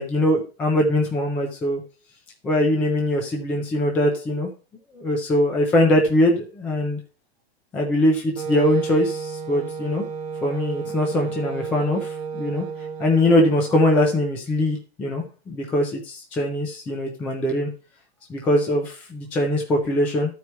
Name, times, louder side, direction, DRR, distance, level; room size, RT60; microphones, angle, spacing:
voice 1, 0.0-1.8 2.4-4.5 4.9-7.0 7.7-10.1 10.4-12.6 13.0-17.7 18.3-20.3, left 1 dB, 5° left, 1 dB, 0.4 m, -22 dB
Wind instrument woodwind instrument, 8.4-14.0, right 6 dB, 35° right, 0.9 m, -32 dB
12.0 x 4.7 x 5.4 m, 0.35 s
supercardioid pair, 175°, 31 cm